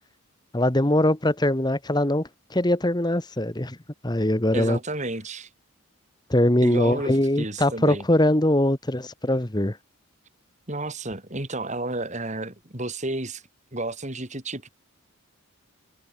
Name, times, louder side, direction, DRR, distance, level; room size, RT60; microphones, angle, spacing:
voice 1, 0.5-3.8 4.0-4.8 6.3-9.8, left 1 dB, 20° left, 1.3 m, -22 dB
voice 2, 4.5-5.5 6.6-8.0 10.7-13.4 13.7-14.7, right 2 dB, 30° right, 3.3 m, -31 dB
head